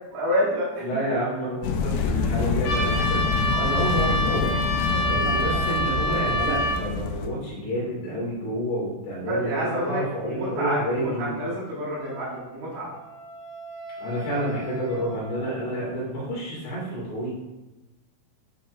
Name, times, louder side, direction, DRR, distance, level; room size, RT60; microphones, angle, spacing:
voice 1, 0.1-0.8 5.2-5.3 9.2-12.9, equal, 70° right, -9 dB, 4.6 m, -28 dB
voice 2, 0.8-4.6 5.1-11.4 14.0-17.3, equal, 65° left, -6 dB, 3.9 m, -29 dB
sound 1, 1.6-7.3, left 4 dB, 85° left, 2.7 m, -26 dB
Trumpet, 2.6-6.8, equal, 50° left, 3.3 m, -26 dB
Wind instrument woodwind instrument, 12.0-16.0, equal, 85° right, 4.4 m, -41 dB
11.0 x 4.4 x 2.4 m, 1.0 s
omnidirectional pair, 6.0 m